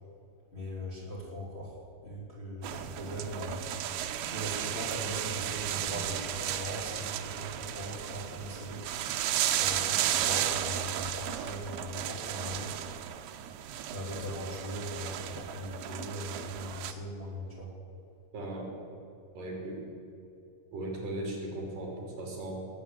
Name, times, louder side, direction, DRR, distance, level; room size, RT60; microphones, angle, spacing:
voice 1, 0.5-3.7 4.3-8.9 9.5-12.9 13.9-17.7, equal, 15° left, -6 dB, 3.3 m, -39 dB
sound 1, 2.6-16.9, right 11 dB, 80° right, 2.4 m, -34 dB
voice 2, 18.3-18.7 19.3-19.8 20.7-22.6, right 1 dB, 65° right, -1 dB, 4.8 m, -37 dB
19.0 x 8.3 x 8.7 m, 2.8 s
omnidirectional pair, 4.3 m